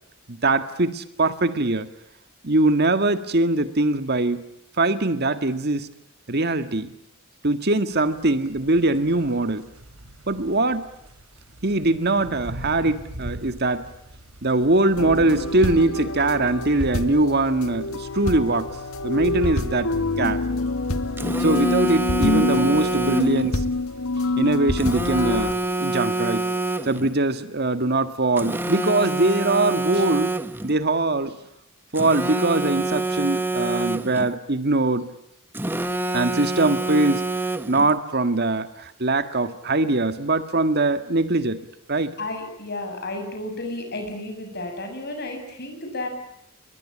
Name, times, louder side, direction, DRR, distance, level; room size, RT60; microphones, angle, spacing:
voice 1, 0.3-1.9 2.4-4.4 4.8-5.9 6.3-6.9 7.4-9.7 10.3-10.9 11.6-13.9 14.4-18.7 19.0-19.9 20.2-20.4 21.4-23.6 24.4-25.5 25.8-26.5 26.9-30.3 30.6-31.4 31.9-35.1 36.1-37.2 37.7-41.6 41.9-42.1, right 2 dB, 50° right, 10 dB, 1.8 m, -22 dB
sound 1, 7.9-25.8, right 1 dB, 85° right, 3.9 m, -44 dB
sound 2, 15.0-25.5, left 2 dB, 75° left, 1.8 m, -26 dB
Telephone, 21.2-23.5 24.8-27.1 28.4-30.7 32.0-34.3 35.5-37.9, right 2 dB, 10° right, 1.2 m, -26 dB
voice 2, 42.2-46.1, left 2 dB, 50° left, 5 dB, 7.3 m, -32 dB
29.0 x 23.0 x 8.6 m, 0.78 s
head